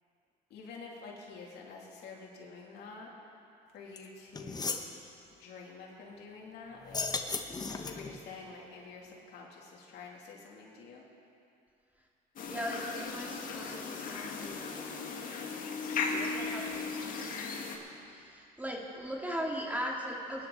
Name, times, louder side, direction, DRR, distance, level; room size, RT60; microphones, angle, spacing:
voice 1, 0.5-3.1 3.7-4.9 5.4-7.0 7.7-11.0, left 4 dB, 75° left, -2 dB, 2.7 m, -48 dB
sound 1, 4.0-4.1 4.3-4.9 6.8-8.2, left 4 dB, 25° left, 0.9 m, -35 dB
sound 2, 12.4-17.8, left 4 dB, 55° left, 1.8 m, -37 dB
voice 2, 12.4-14.9 16.1-17.6 18.0-20.5, equal, 10° right, -2 dB, 2.1 m, -39 dB
22.5 x 10.5 x 4.0 m, 2.6 s
cardioid pair, 110°, 17 cm